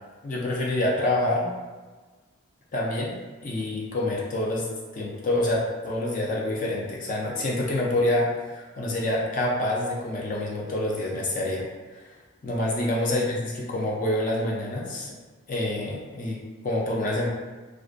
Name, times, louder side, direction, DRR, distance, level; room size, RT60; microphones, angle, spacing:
voice 1, 0.2-1.5 2.7-4.7 4.9-11.6 11.9-12.1 12.4-15.1 15.5-16.4 16.6-17.3, left 1 dB, 40° left, -3 dB, 0.4 m, -27 dB
2.4 x 2.2 x 2.4 m, 1.3 s
head